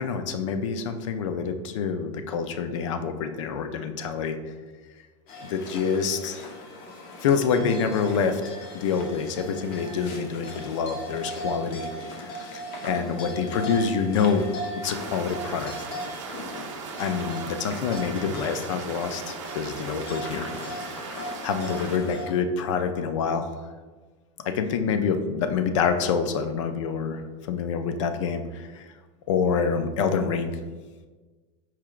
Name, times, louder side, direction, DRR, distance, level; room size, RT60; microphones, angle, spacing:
voice 1, 0.0-4.4 5.4-6.5 7.2-11.9 12.2-14.5 14.8-15.8 17.0-21.0 21.4-23.5 24.4-27.2 27.5-28.9 29.3-30.6, left 6 dB, 85° left, 8 dB, 0.4 m, -27 dB
sound 1, 5.3-22.3, equal, 50° left, 0.7 m, -38 dB
sound 2, 14.8-22.0, right 6 dB, 85° right, 0.5 m, -39 dB
4.6 x 2.8 x 2.3 m, 1.3 s
supercardioid pair, 135°, 15 cm